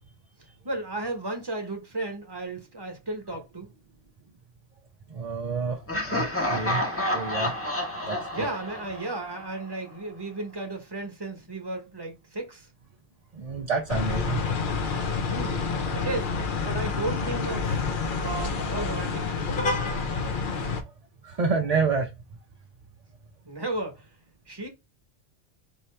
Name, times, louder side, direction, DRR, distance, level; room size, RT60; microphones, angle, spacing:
voice 1, 0.6-3.7 8.3-12.7 15.2-16.3 16.6-17.8 18.2-19.5 23.4-24.1 24.5-24.7, right 2 dB, 20° right, 1.1 m, -34 dB
voice 2, 5.1-5.8 6.0-6.8 7.1-7.5 8.1-8.4 13.3-14.4 21.2-22.1, right 4 dB, 40° right, 0.6 m, -28 dB
Laughter, 5.9-9.8, left 1 dB, 10° left, 1.0 m, -29 dB
sound 1, 13.9-20.8, left 4 dB, 50° left, 0.8 m, -28 dB
4.6 x 2.8 x 3.3 m
omnidirectional pair, 1.3 m